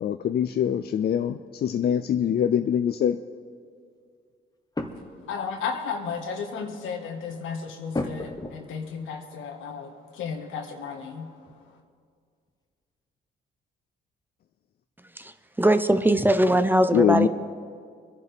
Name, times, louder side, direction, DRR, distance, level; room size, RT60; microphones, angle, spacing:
voice 1, 0.0-3.2 16.9-17.3, left 9 dB, 50° left, 8 dB, 0.5 m, -23 dB
sound 1, 2.1-2.4 4.7-5.3 5.7-5.8 6.0-6.1 6.7-6.9 7.9-8.9 11.0-11.1 11.5-12.1 12.5-12.6, left 2 dB, 20° left, 1.2 m, -35 dB
voice 2, 5.2-11.8, left 5 dB, 85° left, 3 dB, 1.6 m, -34 dB
voice 3, 15.6-17.3, right 1 dB, 10° right, 10 dB, 0.6 m, -20 dB
24.0 x 11.0 x 3.5 m, 2.1 s
cardioid pair, 90°, 20 cm